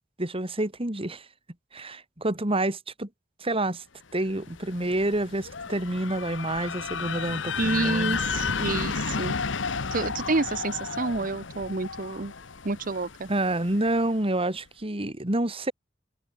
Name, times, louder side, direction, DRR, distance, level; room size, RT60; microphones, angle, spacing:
voice 1, 0.2-1.2 1.7-3.1 3.4-3.8 4.1-8.2 13.3-15.7, right 1 dB, 30° right, 2.6 m, -28 dB
sound 1, 4.3-14.1, left 5 dB, 85° left, 1.2 m, -33 dB
voice 2, 7.6-9.4 9.9-12.3 12.6-13.3, right 3 dB, 50° right, 1.0 m, -29 dB
open air
head